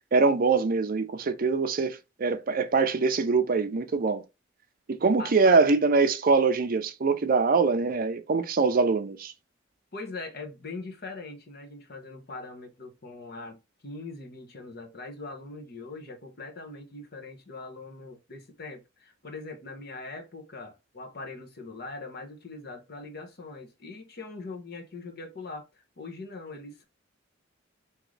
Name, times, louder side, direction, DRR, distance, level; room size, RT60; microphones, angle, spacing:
voice 1, 0.1-4.2 4.9-9.3, right 4 dB, 50° right, 0.5 m, -23 dB
voice 2, 5.2-5.6 9.9-26.8, left 3 dB, 55° left, 1.0 m, -41 dB
3.7 x 2.9 x 3.2 m
head